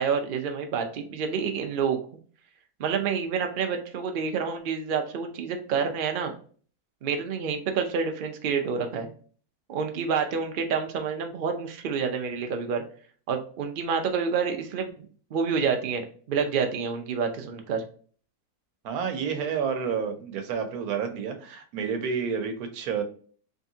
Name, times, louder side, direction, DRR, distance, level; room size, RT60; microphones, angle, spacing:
voice 1, 0.0-2.0 2.8-6.3 7.0-9.1 9.7-12.8 13.3-17.8, right 6 dB, 60° right, 5 dB, 0.5 m, -28 dB
voice 2, 18.8-23.0, right 6 dB, 75° right, 6 dB, 1.2 m, -30 dB
3.7 x 3.3 x 2.7 m, 0.43 s
omnidirectional pair, 1.6 m